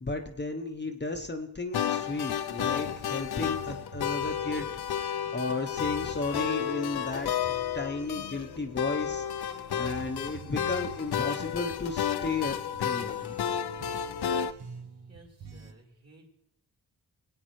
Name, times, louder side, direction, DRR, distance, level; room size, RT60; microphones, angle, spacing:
voice 1, 0.0-7.3 7.7-9.2 9.8-13.3, left 3 dB, 30° left, 4 dB, 0.7 m, -34 dB
sound 1, 1.7-14.5, left 9 dB, 80° left, 0.5 m, -32 dB
sound 2, 2.0-15.7, right 5 dB, 90° right, 1.2 m, -49 dB
voice 2, 15.1-16.3, right 1 dB, 40° right, -1 dB, 3.3 m, -56 dB
22.0 x 8.8 x 3.1 m, 0.81 s
wide cardioid pair, 105°, 38 cm